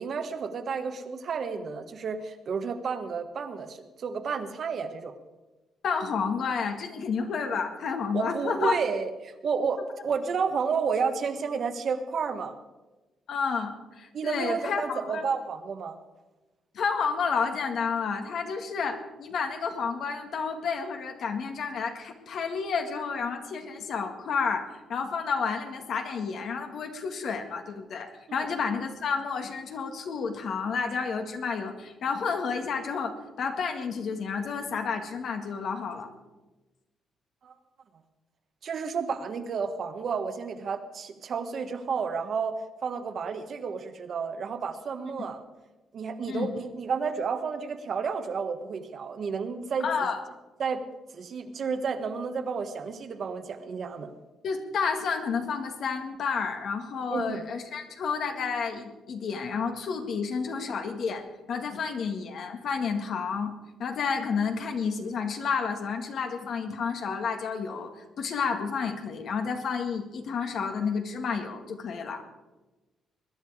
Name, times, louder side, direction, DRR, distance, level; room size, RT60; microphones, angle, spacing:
voice 1, 0.0-5.1 8.1-12.5 14.1-15.9 28.3-28.4 37.4-37.5 38.6-42.5 42.8-45.4 45.9-49.9 50.6-50.8 51.1-54.1 57.1-57.4, right 5 dB, 50° right, 8 dB, 1.3 m, -31 dB
voice 2, 5.8-8.8 13.3-15.2 16.7-36.1 46.3-46.5 49.8-50.2 54.4-63.5 63.8-67.9 68.2-72.2, left 5 dB, 60° left, 5 dB, 1.9 m, -30 dB
20.5 x 10.5 x 4.9 m, 1.1 s
cardioid pair, 120°, 0 cm